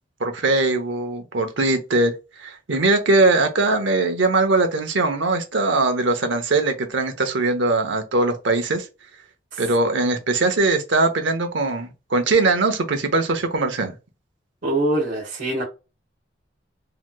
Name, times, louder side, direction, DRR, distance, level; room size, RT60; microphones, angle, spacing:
voice 1, 0.2-8.9 9.6-13.9, right 2 dB, 80° right, 0.8 m, -21 dB
voice 2, 14.6-15.6, right 1 dB, 45° right, 1.2 m, -23 dB
3.2 x 2.9 x 2.2 m
head